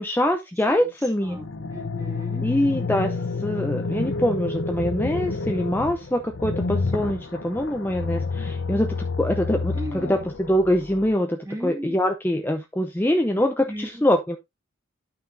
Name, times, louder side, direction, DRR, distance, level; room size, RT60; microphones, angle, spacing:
voice 1, 0.0-1.4 2.4-3.2 3.4-10.2 10.5-14.4, left 1 dB, 10° left, 0.7 m, -24 dB
voice 2, 0.7-2.5 9.7-10.3 11.4-12.0 13.3-14.0, equal, 15° right, 2.1 m, -37 dB
sound 1, 1.2-11.2, left 3 dB, 75° left, 0.9 m, -29 dB
11.0 x 5.9 x 2.7 m
head